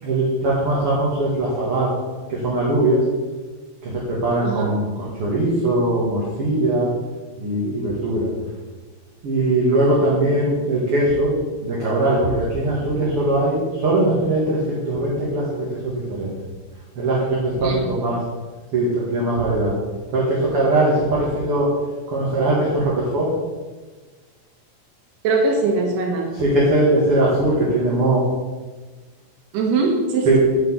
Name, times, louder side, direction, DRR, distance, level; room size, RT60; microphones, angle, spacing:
voice 1, 0.0-2.0 2.3-3.0 3.8-6.9 7.4-8.3 9.2-16.3 17.0-18.2 18.7-19.7 20.1-21.7 22.1-23.3 26.3-28.3 30.3-30.4, right 1 dB, 40° right, -6 dB, 2.4 m, -20 dB
voice 2, 4.4-4.7 17.6-18.1 25.2-26.3 29.5-30.4, right 3 dB, 75° right, 2 dB, 3.5 m, -21 dB
8.6 x 6.8 x 8.1 m, 1.3 s
omnidirectional pair, 4.8 m